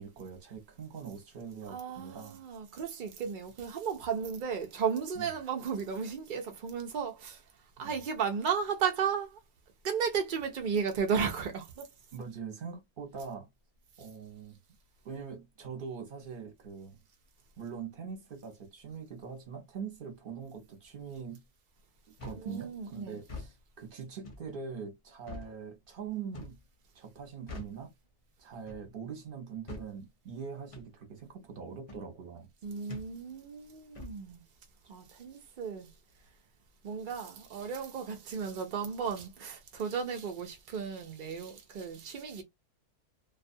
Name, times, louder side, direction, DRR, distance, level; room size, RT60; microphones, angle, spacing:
voice 1, 0.0-2.4 5.2-5.3 7.8-7.9 12.1-13.5 14.0-14.6 15.0-17.0 17.6-21.4 22.2-26.6 26.9-27.9 28.4-32.5, right 6 dB, 45° right, 0.8 m, -43 dB
voice 2, 1.7-7.4 7.8-9.4 9.8-11.9 22.3-23.2 32.6-34.4 34.9-35.9 36.8-42.4, right 6 dB, 80° right, 0.4 m, -34 dB
sound 1, 22.2-22.5 23.2-23.5 24.2-24.5 25.3-25.5 26.3-26.6 27.5-27.8 28.7-28.9 29.7-29.9 30.7-30.9 31.9-32.1 32.9-33.1 33.9-34.2, left 3 dB, 50° left, 0.4 m, -44 dB
2.4 x 2.3 x 2.6 m
omnidirectional pair, 1.6 m